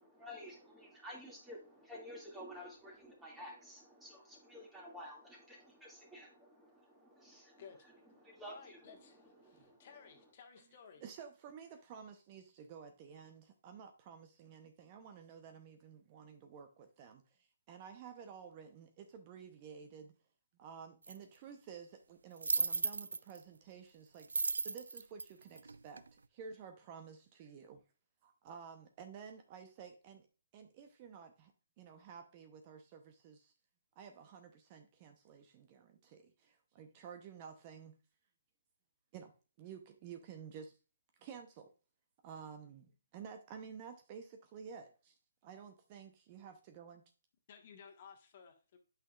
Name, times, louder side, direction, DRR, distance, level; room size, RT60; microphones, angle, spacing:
voice 1, 0.0-10.3, equal, 10° right, -1 dB, 2.3 m, -52 dB
voice 2, 8.4-9.2 9.4-11.0 47.5-48.8, left 6 dB, 45° left, 4 dB, 1.4 m, -56 dB
voice 3, 11.0-20.2 20.6-27.8 28.2-30.3 30.5-31.5 31.8-33.5 34.0-38.0 39.1-40.8 41.2-41.7 42.2-45.2 45.4-47.0, right 7 dB, 30° right, 6 dB, 0.8 m, -52 dB
sound 1, 21.1-21.2 22.4-23.4 24.2-26.1, right 4 dB, 85° right, 0.4 m, -35 dB
8.2 x 5.8 x 2.4 m, 0.33 s
hypercardioid pair, 150°, 0 cm